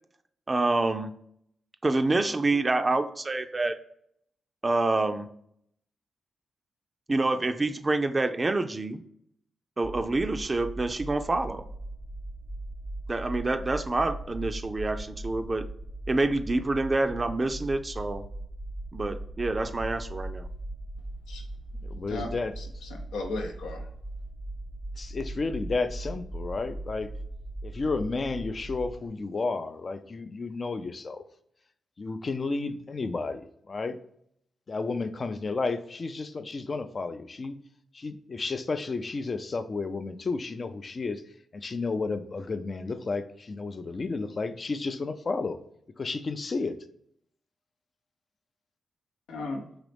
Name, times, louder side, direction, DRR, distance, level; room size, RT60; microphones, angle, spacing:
voice 1, 0.5-1.1 1.8-3.7 4.6-5.3 7.1-9.0 9.8-11.6 13.1-15.6 16.1-18.2 18.9-20.5, right 2 dB, 35° right, 8 dB, 0.4 m, -27 dB
sound 1, 9.8-29.1, right 1 dB, 20° left, 0.7 m, -39 dB
voice 2, 21.8-22.5 25.0-27.1 27.6-31.3 32.0-34.0 34.7-37.6 37.9-41.2 41.5-45.6 46.0-46.7, left 3 dB, 50° left, 9 dB, 0.4 m, -32 dB
voice 3, 22.6-23.9 49.3-49.7, left 2 dB, 85° left, 2 dB, 0.7 m, -36 dB
3.9 x 3.0 x 3.3 m, 0.69 s
supercardioid pair, 40°, 0 cm